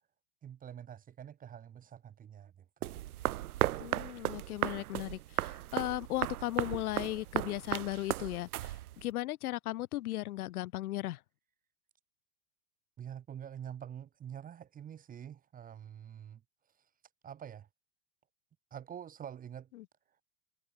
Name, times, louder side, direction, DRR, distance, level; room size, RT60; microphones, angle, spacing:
voice 1, 0.4-2.5 2.8-3.0 13.0-16.4 17.2-17.7 18.7-19.7, right 9 dB, 20° right, 0.8 m, -46 dB
sound 1, 2.8-9.1, right 14 dB, 90° right, 1.1 m, -36 dB
voice 2, 3.8-11.2 19.7-19.8, left 16 dB, 90° left, 0.8 m, -36 dB
supercardioid pair, 125°, 43 cm